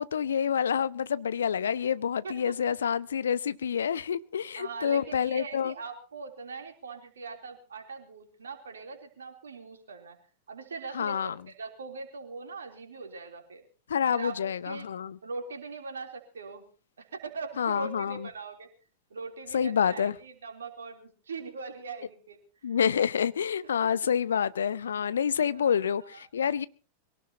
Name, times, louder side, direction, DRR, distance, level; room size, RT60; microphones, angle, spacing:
voice 1, 0.0-5.7 10.9-11.3 13.9-15.2 17.6-18.3 19.5-20.2 22.6-26.7, left 8 dB, 65° left, 0.6 m, -28 dB
voice 2, 2.2-2.8 4.5-10.2 10.5-13.6 14.1-14.9 15.2-16.6 17.0-18.7 19.1-22.4 22.7-22.8 25.0-25.1 25.5-25.7 26.0-26.2, right 4 dB, 70° right, 3.3 m, -41 dB
23.5 x 17.5 x 2.9 m
figure-of-eight pair, 90°, 0 cm